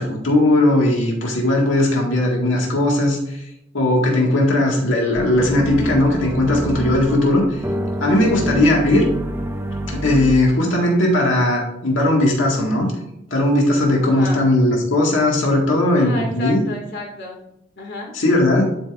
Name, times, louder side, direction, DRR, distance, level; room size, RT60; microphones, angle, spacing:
voice 1, 0.0-3.4 3.7-7.6 8.0-9.0 9.9-12.9 13.3-16.6 18.1-18.7, left 1 dB, 80° left, -1 dB, 1.9 m, -18 dB
sound 1, 5.1-10.3, right 1 dB, 10° right, 0.5 m, -26 dB
voice 2, 14.0-14.4 16.0-17.4 17.8-18.1, left 2 dB, 60° left, -1 dB, 2.2 m, -31 dB
11.5 x 5.3 x 2.5 m, 0.81 s
head